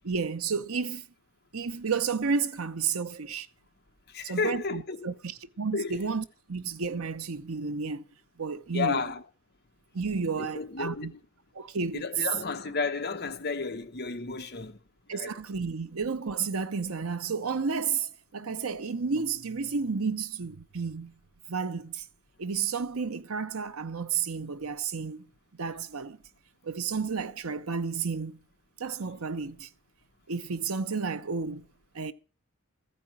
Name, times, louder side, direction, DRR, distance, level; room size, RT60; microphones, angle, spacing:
voice 1, 0.0-1.1 1.5-3.5 4.2-8.1 8.4-9.0 9.9-11.1 11.5-12.1 15.1-21.1 21.5-22.1 22.4-25.3 25.6-26.2 26.6-28.4 28.8-29.7 30.3-31.7 31.9-32.1, right 5 dB, 85° right, 0.9 m, -31 dB
voice 2, 4.1-5.1 5.7-6.0 8.7-9.2 10.4-11.2 11.9-14.8 15.1-15.3, left 4 dB, 50° left, 1.1 m, -32 dB
15.0 x 5.2 x 8.7 m
head